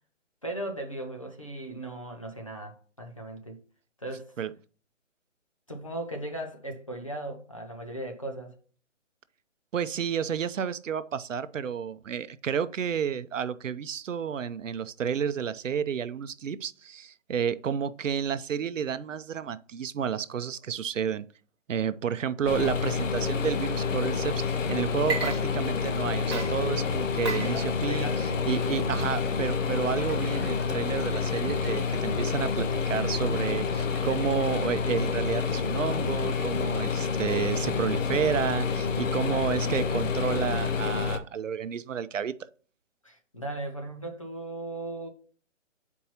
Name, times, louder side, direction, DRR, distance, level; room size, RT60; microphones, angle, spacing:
voice 1, 0.4-3.6 4.0-4.3 5.7-8.5 27.4-29.1 39.2-39.6 43.0-45.1, right 1 dB, 25° left, 0.7 m, -37 dB
voice 2, 9.7-21.3 21.7-28.1 28.5-42.3, right 8 dB, 85° right, 0.6 m, -31 dB
sound 1, 22.5-41.2, left 5 dB, 80° left, 1.0 m, -28 dB
Water / Liquid, 25.0-26.0 26.3-34.5, right 3 dB, 20° right, 1.1 m, -40 dB
8.5 x 4.5 x 2.8 m
hypercardioid pair, 180°, 37 cm